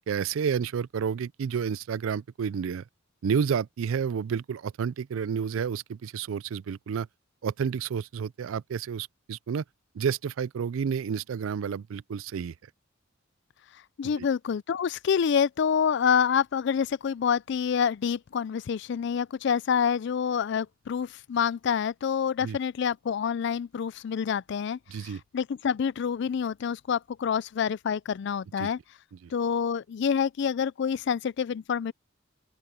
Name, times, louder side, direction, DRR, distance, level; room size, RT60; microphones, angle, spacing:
voice 1, 0.1-2.8 3.2-7.1 7.4-9.6 9.9-12.5 14.2-14.3 22.4-22.6 24.9-25.2 28.6-28.7, right 7 dB, 75° right, 0.4 m, -30 dB
voice 2, 14.0-28.8 29.3-31.9, left 7 dB, 55° left, 0.3 m, -27 dB
open air
head